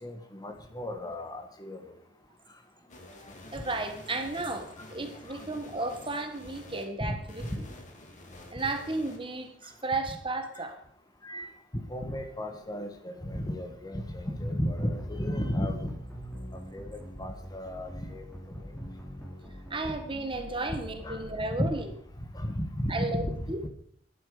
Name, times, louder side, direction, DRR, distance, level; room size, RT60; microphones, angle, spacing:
voice 1, 0.0-1.8 5.3-5.4 7.0-7.2 7.5-7.6 11.2-11.5 11.7-15.9 16.7-18.2 21.0-21.2 21.6-21.7 22.3-23.4 23.6-23.7, equal, 20° left, 6 dB, 1.4 m, -33 dB
sound 1, 2.9-6.8 7.3-9.8, left 1 dB, 40° left, 2.6 m, -49 dB
voice 2, 3.5-7.6 8.5-10.8 19.7-21.9 22.9-23.6, right 2 dB, 25° right, 6 dB, 1.5 m, -34 dB
sound 2, 14.8-21.8, equal, ahead, 3.7 m, -44 dB
13.5 x 11.5 x 5.0 m, 0.64 s
head